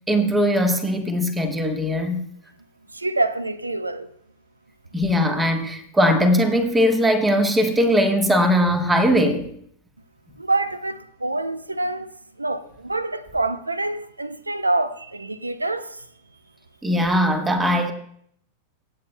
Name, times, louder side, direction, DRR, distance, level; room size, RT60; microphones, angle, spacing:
voice 1, 0.1-2.3 4.9-9.5 16.8-17.9, equal, 10° right, 1.4 m, -20 dB
voice 2, 2.9-4.1 10.4-16.0, right 2 dB, 80° right, 0.6 m, -26 dB
24.0 x 8.8 x 2.2 m
figure-of-eight pair, 90°, 0 cm